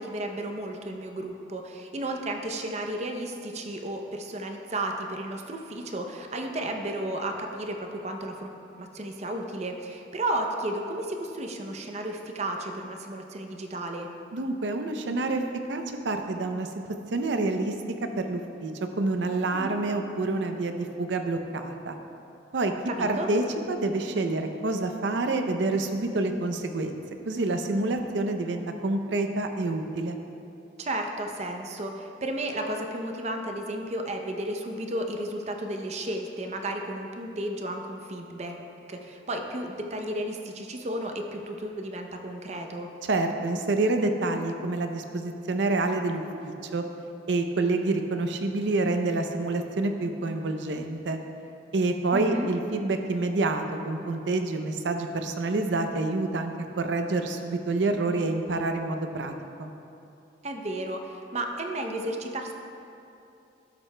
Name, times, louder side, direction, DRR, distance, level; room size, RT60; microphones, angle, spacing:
voice 1, 0.0-14.1 19.5-19.8 22.9-23.3 30.8-38.6 38.9-42.9 52.1-52.5 60.4-62.5, right 1 dB, 40° right, 4 dB, 0.6 m, -33 dB
voice 2, 14.3-15.4 15.7-17.7 18.2-18.7 19.0-22.0 22.5-22.7 23.0-30.2 43.0-46.8 47.3-51.2 51.7-59.3 59.6-59.7, right 2 dB, 80° right, 6 dB, 0.6 m, -28 dB
12.5 x 7.6 x 2.2 m, 2.7 s
head